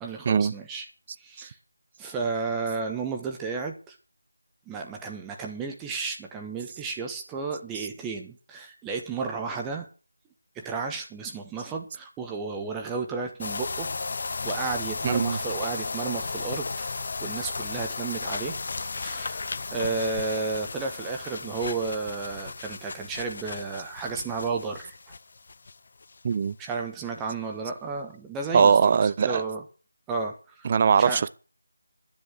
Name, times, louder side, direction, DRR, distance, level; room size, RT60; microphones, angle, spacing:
voice 1, 0.0-0.9 1.2-1.6 2.0-4.0 4.7-9.9 10.5-13.9 14.2-16.9 17.2-18.6 19.0-25.1 26.6-29.6 30.1-30.7 31.0-31.3, right 4 dB, 10° right, 1.2 m, -33 dB
sound 1, 13.4-25.8 26.0-26.4 26.7-26.8, left 4 dB, 40° left, 0.6 m, -35 dB
voice 2, 15.0-15.4 26.2-26.5 28.5-29.4 30.6-31.3, right 6 dB, 30° right, 0.6 m, -21 dB
10.5 x 10.0 x 8.1 m
figure-of-eight pair, 160°, 0 cm